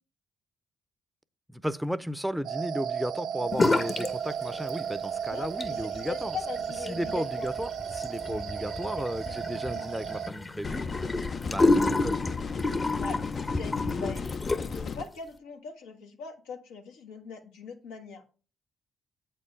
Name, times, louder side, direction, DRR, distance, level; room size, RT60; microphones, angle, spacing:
voice 1, 1.5-6.4 6.8-10.9 11.5-12.1, equal, 5° right, 0.6 m, -34 dB
sound 1, 2.4-10.3, right 8 dB, 75° right, 0.5 m, -35 dB
sound 2, 3.5-4.1 4.4-5.1 5.4-14.9, left 2 dB, 35° left, 0.9 m, -29 dB
voice 2, 5.3-7.5 8.3-8.4 9.0-9.3 9.6-9.9 13.0-14.2 14.6-18.3, left 5 dB, 85° left, 1.1 m, -41 dB
sound 3, 10.6-15.0, left 5 dB, 55° left, 0.5 m, -35 dB
8.2 x 4.5 x 5.0 m
hypercardioid pair, 45°, 0 cm